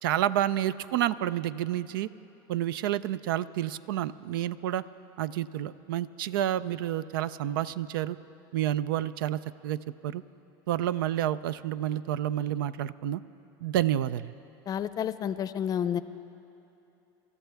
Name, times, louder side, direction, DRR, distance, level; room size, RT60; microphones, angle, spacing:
voice 1, 0.0-2.1 2.5-4.8 5.2-8.2 8.5-10.2 10.7-13.2 13.6-14.3, right 12 dB, 85° right, 16 dB, 0.4 m, -29 dB
voice 2, 14.7-16.0, left 9 dB, 35° left, 14 dB, 0.5 m, -30 dB
27.5 x 13.5 x 3.5 m, 2.9 s
supercardioid pair, 110°, 11 cm